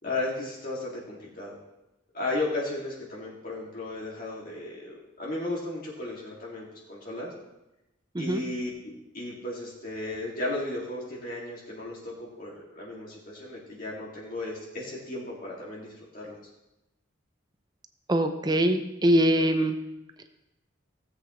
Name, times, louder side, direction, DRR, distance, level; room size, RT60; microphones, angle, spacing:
voice 1, 0.0-1.6 2.1-7.3 8.2-16.4, left 2 dB, 45° left, -5 dB, 2.2 m, -35 dB
voice 2, 18.1-19.8, right 1 dB, 20° right, 7 dB, 0.6 m, -23 dB
16.5 x 8.1 x 3.1 m, 0.93 s
head